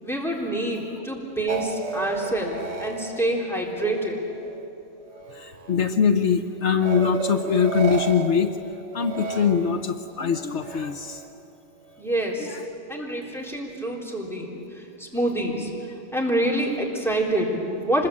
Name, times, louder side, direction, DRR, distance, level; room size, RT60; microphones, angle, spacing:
voice 1, 0.0-4.2 12.0-12.6 12.9-15.7 16.1-18.1, right 1 dB, ahead, -3 dB, 3.8 m, -27 dB
sound 1, 1.5-4.7 5.0-5.8 6.8-10.1 10.6-11.3, right 5 dB, 90° right, 1.5 m, -34 dB
voice 2, 5.1-8.6 8.9-11.2 12.4-12.6 13.0-13.3, left 6 dB, 75° left, 8 dB, 1.2 m, -23 dB
25.5 x 21.0 x 8.7 m, 2.9 s
omnidirectional pair, 1.2 m